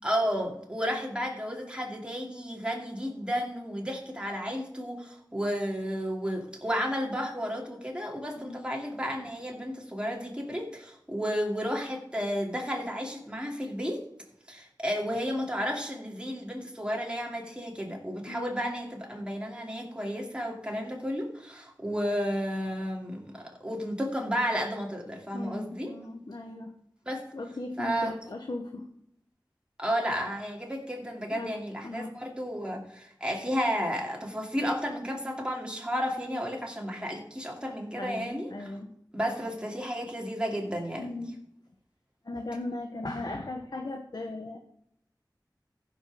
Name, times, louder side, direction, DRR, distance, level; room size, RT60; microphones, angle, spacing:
voice 1, 0.0-14.0 14.5-25.9 27.1-27.2 27.8-28.2 29.8-38.7 39.1-41.2, equal, 15° right, -1 dB, 2.5 m, -32 dB
voice 2, 8.4-8.7 18.3-18.5 25.3-26.7 27.3-28.9 31.3-31.5 31.8-32.2 38.0-38.9 41.0-41.4 42.2-44.6, left 2 dB, 65° left, 4 dB, 1.0 m, -37 dB
15.0 x 5.3 x 6.3 m, 0.74 s
wide cardioid pair, 60°, 8 cm